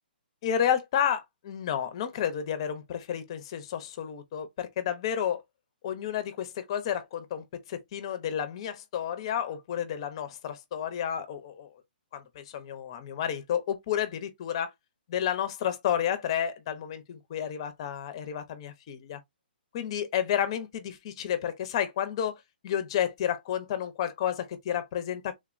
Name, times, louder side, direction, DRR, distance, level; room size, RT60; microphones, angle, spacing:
voice 1, 0.4-5.4 5.8-11.7 12.1-14.7 15.1-19.2 19.7-25.4, left 9 dB, 30° left, 0.5 m, -31 dB
3.2 x 2.1 x 2.4 m
hypercardioid pair, 170°, 6 cm